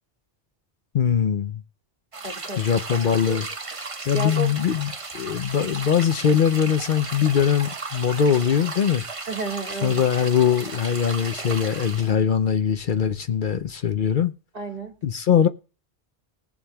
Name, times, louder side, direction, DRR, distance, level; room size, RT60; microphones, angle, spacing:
voice 1, 0.9-1.6 2.6-3.5 4.1-9.0 9.8-14.3 15.0-15.5, left 8 dB, 60° left, 0.7 m, -21 dB
sound 1, 2.1-12.1, right 3 dB, 35° right, 0.9 m, -35 dB
voice 2, 2.2-2.6 2.9-3.4 4.1-4.5 9.3-10.0 14.5-14.9, right 2 dB, 60° right, 2.5 m, -31 dB
21.0 x 7.2 x 2.3 m
omnidirectional pair, 1.0 m